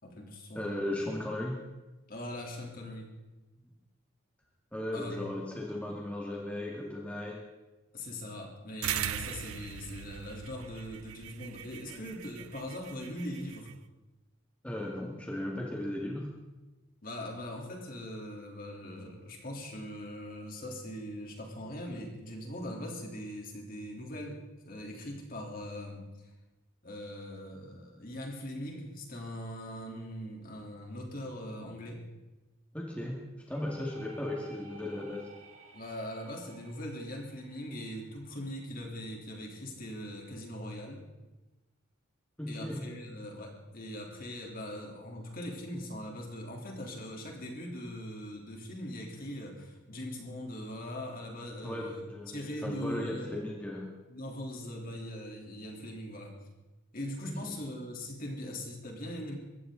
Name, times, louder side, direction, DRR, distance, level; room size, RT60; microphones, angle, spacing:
voice 1, 0.0-0.8 2.1-3.1 4.9-5.1 7.9-13.7 17.0-26.0 26.8-32.0 35.7-41.0 42.5-53.4 54.1-56.3 56.9-59.3, left 1 dB, 45° left, 0 dB, 3.4 m, -41 dB
voice 2, 0.5-1.6 4.7-7.4 11.9-12.0 14.6-16.3 32.7-33.2 33.5-35.3 42.4-42.8 51.6-53.9 57.2-57.5, left 1 dB, 5° left, -2 dB, 2.0 m, -36 dB
sound 1, 8.8-13.7, right 11 dB, 90° right, 0.5 m, -39 dB
sound 2, 33.5-39.1, right 4 dB, 35° right, 3.5 m, -56 dB
23.5 x 15.5 x 3.9 m, 1.1 s
head